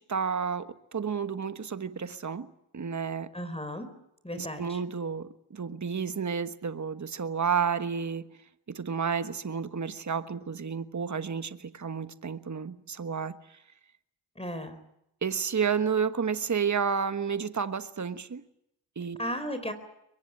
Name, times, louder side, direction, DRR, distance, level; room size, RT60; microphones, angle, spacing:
voice 1, 0.0-2.5 2.7-3.3 4.4-8.3 8.7-13.6 15.2-18.4 19.0-19.3, right 6 dB, 35° right, 1.4 m, -31 dB
voice 2, 3.3-3.9 4.2-4.8 14.4-14.8 19.2-19.7, equal, 10° left, 4.3 m, -35 dB
23.5 x 21.0 x 8.7 m
supercardioid pair, 45°, 49 cm